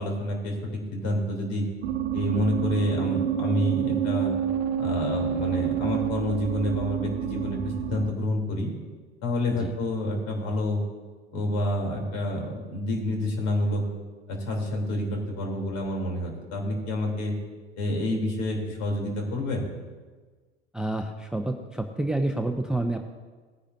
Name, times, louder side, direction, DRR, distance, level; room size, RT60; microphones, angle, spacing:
voice 1, 0.0-1.7 2.1-4.3 4.8-8.7 9.2-10.8 11.3-13.8 14.3-17.3 17.8-19.7, left 1 dB, 55° left, 1 dB, 3.3 m, -28 dB
sound 1, 1.8-8.1, right 9 dB, 75° right, 0.8 m, -28 dB
voice 2, 20.7-23.0, right 2 dB, ahead, 6 dB, 0.6 m, -28 dB
19.0 x 9.9 x 2.7 m, 1.4 s
hypercardioid pair, 80°, 31 cm